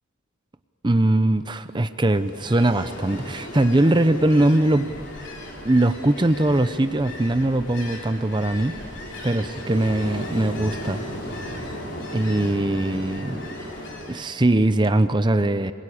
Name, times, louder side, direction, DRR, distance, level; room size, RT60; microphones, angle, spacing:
voice 1, 0.8-4.9 5.6-8.8 9.2-11.0 12.1-13.5 14.1-15.7, right 1 dB, 20° right, 11 dB, 0.6 m, -21 dB
Ocean, 2.1-14.3, left 1 dB, 55° left, 4.1 m, -36 dB
sound 1, 5.6-14.9, left 1 dB, 35° left, 2.6 m, -53 dB
26.5 x 21.5 x 9.9 m, 2.4 s
head